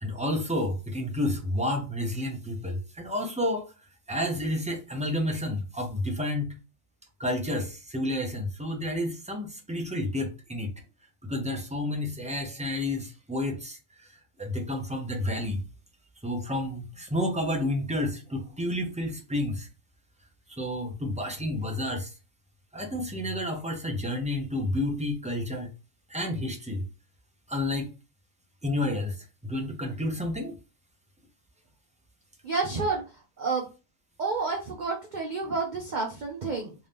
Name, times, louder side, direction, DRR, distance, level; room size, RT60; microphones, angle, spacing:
voice 1, 0.0-3.7 4.1-6.6 7.2-10.7 11.3-14.1 14.4-15.6 16.2-19.7 20.6-22.2 22.7-25.7 26.1-26.9 27.5-27.9 28.6-30.6, left 1 dB, 10° right, 0.4 m, -30 dB
voice 2, 32.4-33.7 34.2-36.7, right 4 dB, 50° right, 0.6 m, -30 dB
3.5 x 2.7 x 3.4 m
omnidirectional pair, 1.3 m